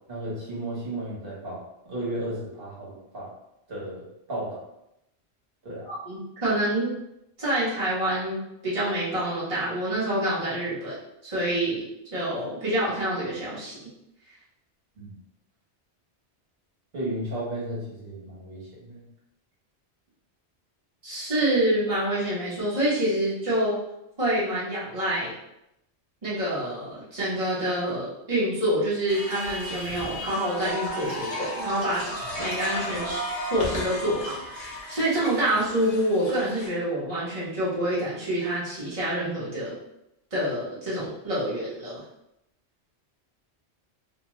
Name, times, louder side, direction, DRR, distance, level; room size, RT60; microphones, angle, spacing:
voice 1, 0.1-3.3 3.7-4.0 4.3-4.6 5.6-5.9 15.0-15.1 16.9-19.0, right 1 dB, 55° right, -7 dB, 1.3 m, -34 dB
voice 2, 5.9-6.9 7.4-11.0 11.2-13.9 21.0-23.8 24.2-25.3 26.2-39.7 40.3-42.0, right 1 dB, 30° right, -9 dB, 1.0 m, -27 dB
sound 1, 29.1-36.7, left 1 dB, 40° left, 0.6 m, -34 dB
2.7 x 2.2 x 3.0 m, 0.83 s
omnidirectional pair, 1.2 m